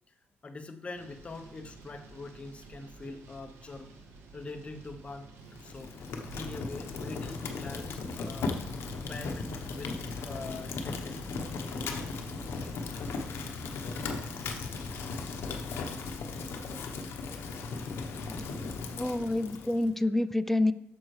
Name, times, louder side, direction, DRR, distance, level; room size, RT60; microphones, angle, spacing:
voice 1, 0.4-3.9 4.3-5.3 5.6-5.9 6.2-8.6 9.1-10.0 10.2-11.3, left 3 dB, 25° left, 5 dB, 0.8 m, -43 dB
sound 1, 0.9-15.1, right 2 dB, 75° right, 1.2 m, -51 dB
Fire, 5.5-19.9, left 4 dB, 65° left, 0.9 m, -37 dB
voice 2, 19.0-20.7, left 2 dB, 5° left, 13 dB, 0.3 m, -27 dB
8.7 x 6.4 x 3.2 m, 0.81 s
cardioid pair, 120°, 4 cm